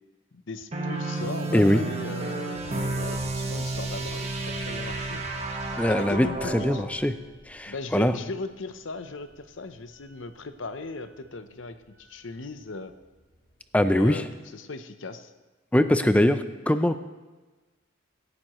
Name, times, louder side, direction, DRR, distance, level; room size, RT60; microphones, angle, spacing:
voice 1, 0.3-5.2 5.8-6.8 7.7-12.9 13.8-14.3 14.5-15.3, left 3 dB, 65° left, 10 dB, 0.8 m, -38 dB
sound 1, 0.7-6.9, right 2 dB, 30° right, 1.3 m, -31 dB
voice 2, 1.5-1.8 5.8-7.1 7.5-8.1 13.7-14.2 15.7-17.0, left 1 dB, 5° left, 10 dB, 0.5 m, -22 dB
sound 2, 2.5-14.4, equal, 45° left, 4.5 m, -49 dB
18.0 x 11.0 x 3.1 m, 1.2 s
head